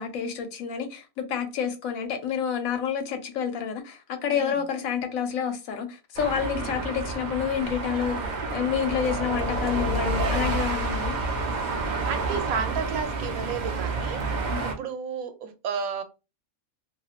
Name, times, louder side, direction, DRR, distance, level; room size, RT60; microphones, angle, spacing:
voice 1, 0.0-11.2 14.5-14.7, left 7 dB, 80° left, 1.1 m, -29 dB
sound 1, 6.2-14.7, right 2 dB, 55° right, 0.5 m, -29 dB
voice 2, 11.8-16.0, right 6 dB, 85° right, 1.0 m, -33 dB
3.0 x 2.7 x 2.4 m
omnidirectional pair, 1.5 m